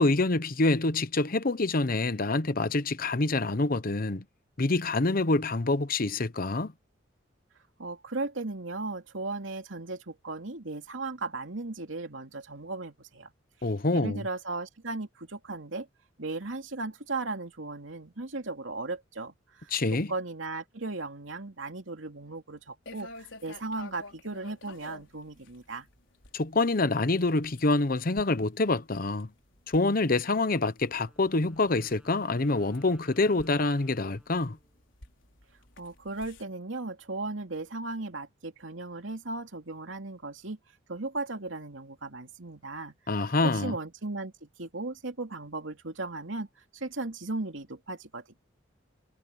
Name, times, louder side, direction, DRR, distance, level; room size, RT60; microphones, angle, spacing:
voice 1, 0.0-4.2 4.6-6.7 13.6-14.2 19.7-20.1 26.3-29.3 29.7-34.6 43.1-43.7, left 2 dB, 50° left, 0.9 m, -26 dB
voice 2, 7.8-13.3 13.9-15.9 16.2-25.9 35.8-40.6 40.9-46.5 46.7-48.4, right 3 dB, 85° right, 2.7 m, -36 dB
sound 1, 22.9-36.4, left 2 dB, 75° left, 4.9 m, -52 dB
Wind instrument woodwind instrument, 30.8-34.9, equal, 5° right, 7.2 m, -60 dB
head